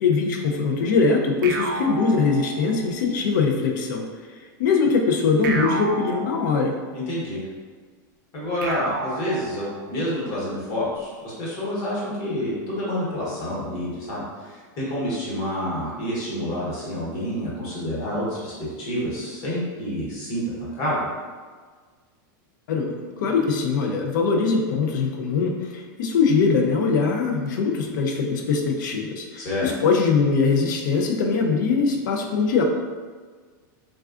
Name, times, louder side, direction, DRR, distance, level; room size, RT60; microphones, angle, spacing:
voice 1, 0.0-4.1 4.6-6.7 22.7-32.6, left 4 dB, 65° left, 2 dB, 0.4 m, -22 dB
sound 1, 1.4-3.1 5.4-7.0 8.6-10.1, right 3 dB, 85° right, 0.4 m, -32 dB
voice 2, 6.9-7.4 8.3-11.1 11.4-21.0 29.4-29.7, equal, 35° left, -7 dB, 1.0 m, -28 dB
3.3 x 2.3 x 2.4 m, 1.5 s
supercardioid pair, 170°, 11 cm